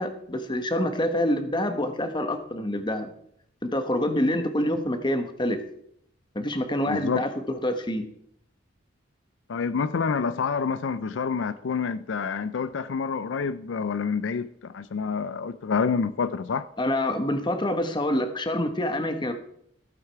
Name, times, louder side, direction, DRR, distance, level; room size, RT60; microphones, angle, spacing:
voice 1, 0.0-3.1 3.6-5.6 6.3-8.0 16.8-19.3, left 1 dB, 25° left, 1.1 m, -26 dB
voice 2, 6.9-7.3 9.5-16.7, left 5 dB, 70° left, 0.4 m, -28 dB
15.0 x 8.3 x 4.6 m
head